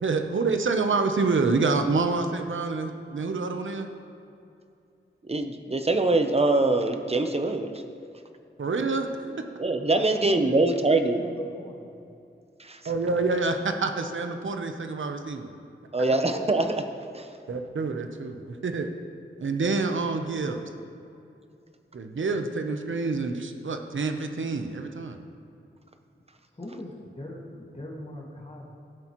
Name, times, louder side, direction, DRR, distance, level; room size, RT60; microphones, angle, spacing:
voice 1, 0.0-3.9 8.6-9.5 12.8-15.5 17.5-18.9 19.4-20.6 21.9-25.2, right 3 dB, 70° right, 6 dB, 0.8 m, -27 dB
voice 2, 5.2-7.8 9.6-11.2 12.6-12.8 15.9-17.4, right 2 dB, 30° right, 6 dB, 0.8 m, -24 dB
voice 3, 10.1-10.6 10.9-11.9 26.5-28.7, left 1 dB, 30° left, -3 dB, 1.9 m, -41 dB
16.5 x 7.7 x 3.1 m, 2.6 s
wide cardioid pair, 90°, 21 cm